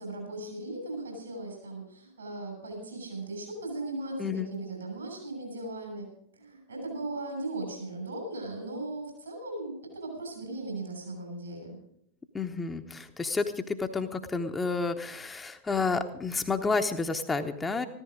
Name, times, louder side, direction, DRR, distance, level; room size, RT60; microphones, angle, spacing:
voice 1, 0.0-6.1 6.3-11.8, right 2 dB, 75° right, 3 dB, 6.8 m, -38 dB
voice 2, 4.2-4.5 12.3-17.9, left 4 dB, 15° left, 5 dB, 1.0 m, -30 dB
14.5 x 13.5 x 5.1 m, 0.73 s
figure-of-eight pair, 90°, 0 cm